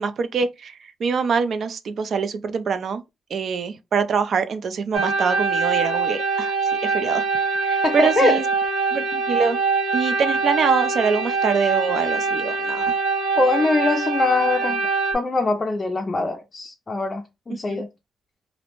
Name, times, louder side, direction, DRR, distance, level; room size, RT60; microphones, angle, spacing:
voice 1, 0.0-3.0 3.3-6.5 6.8-7.2 7.6-8.4 8.9-9.6 9.9-12.9 17.7-17.8, right 6 dB, 55° right, 0.4 m, -24 dB
sound 1, 4.9-15.1, right 4 dB, 85° right, 0.7 m, -23 dB
voice 2, 7.8-8.4 13.4-14.9 15.1-17.9, left 3 dB, 25° left, 0.4 m, -22 dB
2.5 x 2.0 x 2.9 m
cardioid pair, 105°, 0 cm